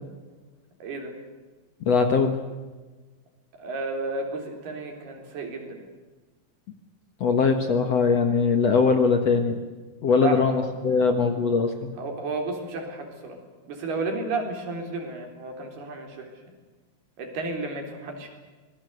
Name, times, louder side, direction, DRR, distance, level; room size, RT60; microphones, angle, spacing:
voice 1, 0.8-1.2 3.5-5.9 10.2-10.6 11.0-11.2 12.0-16.4 17.2-18.3, right 3 dB, 75° right, 3 dB, 5.9 m, -32 dB
voice 2, 1.8-2.4 7.2-9.6 10.0-11.9, left 5 dB, 55° left, 6 dB, 2.0 m, -21 dB
26.0 x 21.0 x 8.2 m, 1.3 s
omnidirectional pair, 4.6 m